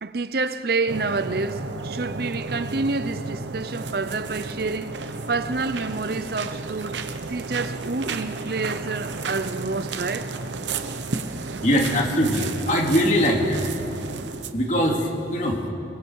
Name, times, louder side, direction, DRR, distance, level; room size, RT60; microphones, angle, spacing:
voice 1, 0.0-7.0 7.3-10.3, right 3 dB, 55° right, 0.6 m, -28 dB
sound 1, 0.9-14.5, right 3 dB, 85° right, 1.0 m, -32 dB
voice 2, 11.6-13.6 14.5-15.6, equal, 45° left, 2.6 m, -21 dB
26.0 x 22.5 x 4.7 m
head